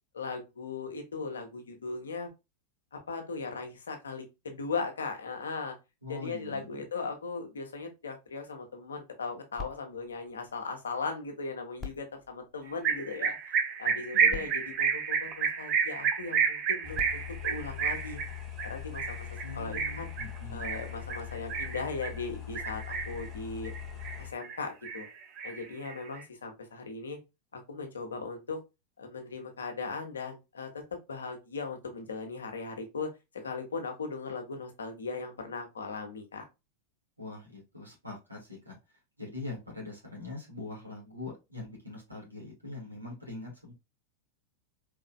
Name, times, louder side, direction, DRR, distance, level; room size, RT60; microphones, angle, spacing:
voice 1, 0.1-2.3 2.9-5.8 6.1-18.2 18.6-19.3 19.5-20.1 20.5-23.7 24.2-25.1 25.4-27.2 27.5-28.6 29.0-30.8 31.1-36.5, left 4 dB, 70° left, 4 dB, 1.2 m, -38 dB
voice 2, 6.0-6.8 13.9-14.5 19.4-20.8 37.2-38.8 39.2-43.7, left 2 dB, 85° right, -2 dB, 2.3 m, -43 dB
sound 1, 9.6-11.2 11.7-13.3 14.0-14.1 14.3-15.9 16.7-18.5 19.2-19.3, left 4 dB, 15° left, 1.3 m, -47 dB
sound 2, 12.8-22.2 22.6-23.3 23.6-24.6 24.8-26.2, right 6 dB, 35° right, 0.8 m, -30 dB
sound 3, 16.8-24.3, left 11 dB, 35° left, 0.9 m, -42 dB
4.6 x 3.8 x 2.2 m, 0.24 s
figure-of-eight pair, 90°, 0 cm